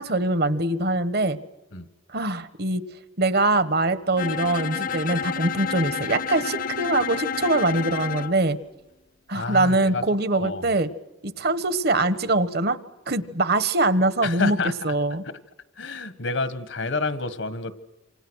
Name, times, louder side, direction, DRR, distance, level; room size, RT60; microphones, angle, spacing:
voice 1, 0.0-1.4 2.1-2.8 3.2-8.6 9.3-10.9 11.2-12.8 13.1-14.6 14.8-15.2, right 2 dB, 50° right, 15 dB, 1.3 m, -23 dB
Bowed string instrument, 4.2-8.4, left 6 dB, 45° left, 0.8 m, -30 dB
voice 2, 9.3-10.0 10.4-10.7 14.2-14.7 15.2-15.4 15.8-17.7, left 3 dB, 70° left, 14 dB, 1.6 m, -29 dB
28.0 x 26.0 x 6.4 m, 1.0 s
head